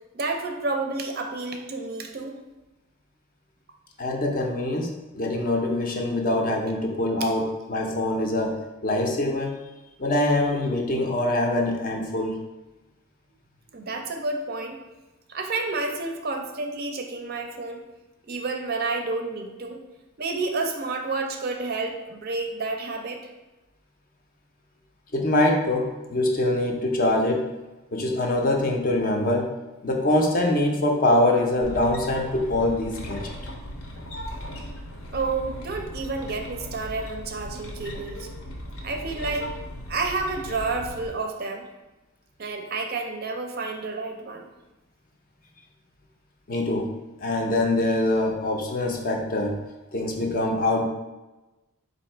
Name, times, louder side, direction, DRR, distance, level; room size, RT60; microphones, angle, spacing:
voice 1, 0.1-2.4 7.2-7.3 13.7-14.8 15.3-17.8 18.3-19.8 20.2-23.2 35.1-38.3 38.8-39.5 39.9-41.7 42.4-44.5, right 3 dB, 45° right, 4 dB, 0.4 m, -30 dB
voice 2, 4.0-8.6 8.8-9.6 10.0-12.3 25.1-27.4 27.9-29.5 29.8-33.2 46.5-46.9 47.2-49.6 49.9-50.8, left 1 dB, 40° left, 1 dB, 0.5 m, -24 dB
sound 1, 31.6-41.1, equal, 70° left, 0.8 m, -37 dB
4.0 x 2.6 x 4.3 m, 1.1 s
head